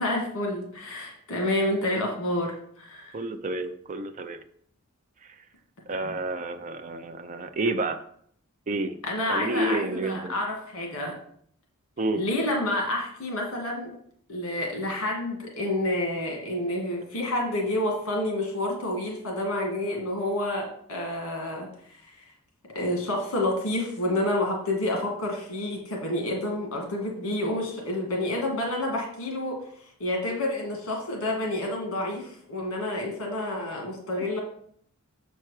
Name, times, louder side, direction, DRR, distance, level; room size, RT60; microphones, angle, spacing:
voice 1, 0.0-3.2 6.0-6.2 9.0-11.1 12.2-13.9 14.3-22.3 22.8-29.6 30.0-34.4, left 1 dB, 65° left, 0 dB, 1.7 m, -29 dB
voice 2, 3.1-4.4 5.9-8.0 8.7-9.0 9.3-10.3 12.0-12.2, right 2 dB, 35° right, 7 dB, 0.5 m, -29 dB
6.9 x 4.4 x 4.8 m, 0.65 s
head